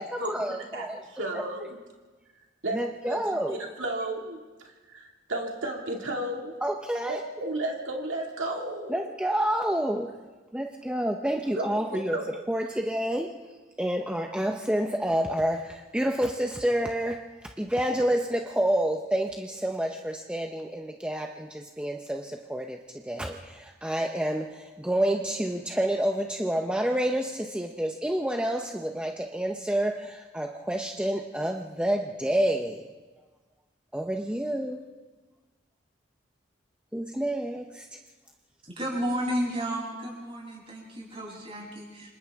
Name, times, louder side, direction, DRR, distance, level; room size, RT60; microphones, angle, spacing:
voice 1, 0.0-1.0 1.3-1.4 2.7-3.6 6.6-7.2 8.9-10.2 10.5-13.4 13.8-32.9 33.9-34.8 36.9-38.0, right 1 dB, 5° right, 2 dB, 0.8 m, -29 dB
voice 2, 0.7-1.8 2.6-2.8 3.1-3.2 3.5-4.4 4.9-6.5 7.1-9.1 11.6-11.8 12.1-12.2, right 1 dB, 85° right, 0 dB, 2.3 m, -33 dB
voice 3, 38.6-42.2, equal, 30° right, -4 dB, 7.9 m, -32 dB
29.5 x 26.0 x 3.6 m, 1.3 s
head